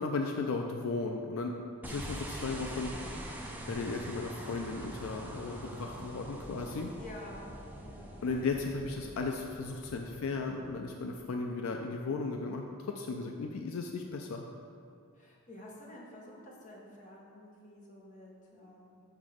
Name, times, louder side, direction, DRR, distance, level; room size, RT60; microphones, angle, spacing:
voice 1, 0.0-1.6 1.8-2.9 3.7-6.9 8.2-14.4, left 3 dB, 70° left, 3 dB, 0.4 m, -35 dB
sound 1, 1.8-11.2, right 1 dB, 10° right, 0.4 m, -44 dB
voice 2, 7.0-7.5 7.8-8.1 15.1-19.0, left 1 dB, 35° left, -3 dB, 1.0 m, -50 dB
5.9 x 4.1 x 4.9 m, 2.4 s
head